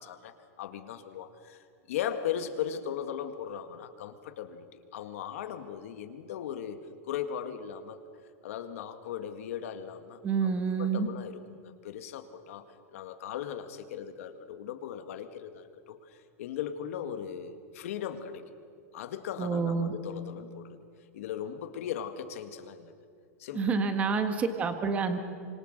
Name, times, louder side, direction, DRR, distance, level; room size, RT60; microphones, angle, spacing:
voice 1, 0.0-8.0 8.4-10.5 10.8-18.5 18.9-20.8 21.1-22.9 23.4-23.8, left 9 dB, 65° left, 8 dB, 2.0 m, -38 dB
voice 2, 10.2-11.1 19.4-19.9 23.5-25.2, right 5 dB, 15° right, 7 dB, 1.6 m, -28 dB
25.5 x 25.5 x 6.7 m, 2.4 s
supercardioid pair, 165°, 8 cm